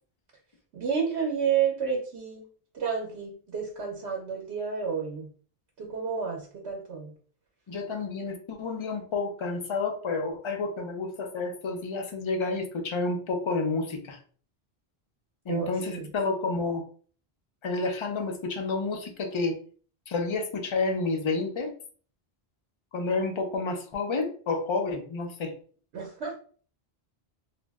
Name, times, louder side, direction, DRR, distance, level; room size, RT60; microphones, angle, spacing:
voice 1, 0.7-2.5 2.7-5.3 5.8-7.1 15.5-16.1 25.9-26.3, right 6 dB, 85° right, -2 dB, 1.0 m, -30 dB
voice 2, 7.7-14.2 15.5-16.8 17.6-19.6 20.1-21.7 22.9-25.5, left 3 dB, 45° left, 5 dB, 0.4 m, -30 dB
2.5 x 2.0 x 3.3 m, 0.43 s
omnidirectional pair, 1.1 m